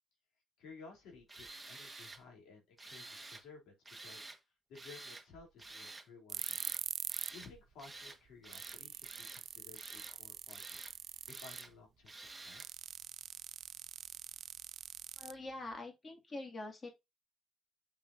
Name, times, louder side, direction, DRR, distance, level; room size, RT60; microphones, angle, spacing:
voice 1, 0.6-3.8 4.0-4.3 4.7-6.6 6.9-10.6 11.2-12.8, left 4 dB, 90° left, 3.7 m, -56 dB
Tools, 1.3-2.2 2.8-3.4 3.9-4.4 4.7-5.3 5.6-6.1 6.4-6.8 7.1-7.5 7.8-8.2 8.4-9.4 9.7-10.2 10.5-10.9 11.3-11.7 12.1-12.7, right 2 dB, 15° right, 1.7 m, -50 dB
sound 1, 6.3-7.4 7.7-7.8 8.3-8.4 8.5-11.8 12.6-15.7, right 9 dB, 65° right, 0.4 m, -44 dB
voice 2, 15.2-16.9, left 2 dB, 35° left, 2.7 m, -45 dB
6.9 x 6.6 x 2.8 m
cardioid pair, 90°, 0 cm